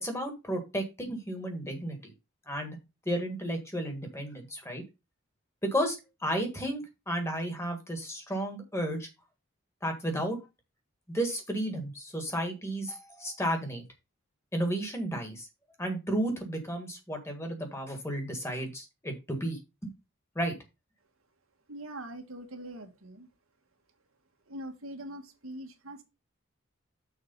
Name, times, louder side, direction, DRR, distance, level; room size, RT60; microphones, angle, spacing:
voice 1, 0.0-2.1 2.5-2.8 3.0-4.8 5.7-9.1 9.8-10.4 11.1-13.8 14.5-15.5 15.8-19.9 20.3-20.6, right 1 dB, 15° left, 4 dB, 1.6 m, -33 dB
voice 2, 21.7-23.3 24.5-26.0, right 1 dB, 90° right, 5 dB, 1.6 m, -42 dB
6.5 x 4.8 x 5.3 m, 0.25 s
head